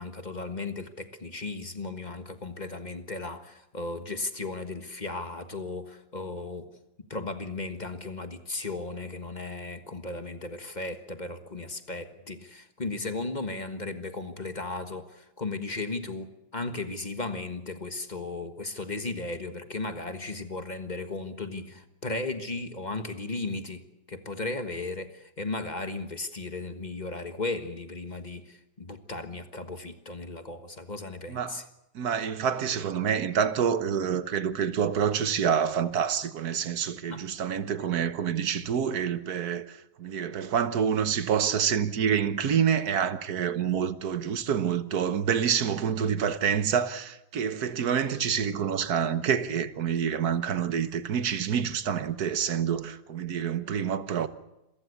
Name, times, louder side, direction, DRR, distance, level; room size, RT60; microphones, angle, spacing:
voice 1, 0.0-6.7 7.0-31.6 37.1-37.3 37.8-37.9, left 3 dB, 25° left, 1.4 m, -36 dB
voice 2, 31.3-31.6 31.9-54.3, right 8 dB, 60° right, 1.5 m, -27 dB
27.5 x 15.0 x 8.3 m
omnidirectional pair, 2.0 m